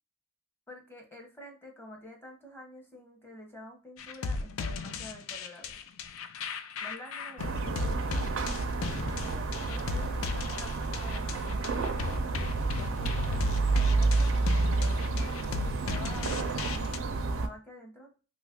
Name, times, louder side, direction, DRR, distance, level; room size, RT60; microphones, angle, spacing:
voice 1, 0.7-5.8 6.8-8.4 9.1-11.6 12.4-18.1, equal, 10° left, 1 dB, 0.8 m, -48 dB
sound 1, 4.0-17.0, left 4 dB, 75° left, 0.4 m, -36 dB
sound 2, 7.4-17.5, right 3 dB, 65° right, 0.5 m, -29 dB
3.0 x 2.4 x 3.5 m, 0.35 s
head